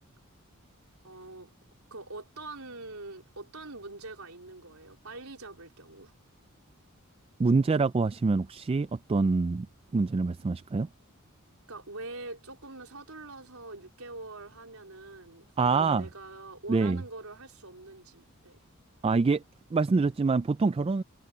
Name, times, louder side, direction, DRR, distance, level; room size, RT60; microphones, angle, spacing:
voice 1, 1.0-1.5 1.9-6.1 11.7-18.6, right 2 dB, 90° right, 3.9 m, -44 dB
voice 2, 7.4-9.7 9.9-10.9 15.6-16.0 16.7-17.0 19.0-19.4 19.7-21.0, right 4 dB, 25° right, 0.3 m, -25 dB
head